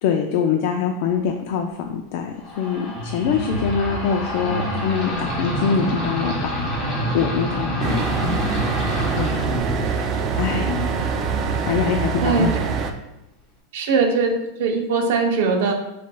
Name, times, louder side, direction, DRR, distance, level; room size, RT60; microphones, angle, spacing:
voice 1, 0.0-6.6 7.1-8.1 9.2-9.4 10.4-10.7 11.7-12.5, left 7 dB, 55° left, 3 dB, 0.3 m, -24 dB
sound 1, 2.4-11.8, equal, 25° left, 1.0 m, -27 dB
sound 2, 7.8-12.9, right 5 dB, 25° right, 0.3 m, -24 dB
voice 2, 13.7-14.3 14.6-15.7, right 4 dB, 65° right, 3 dB, 0.7 m, -20 dB
5.6 x 3.1 x 2.2 m, 0.90 s
supercardioid pair, 165°, 0 cm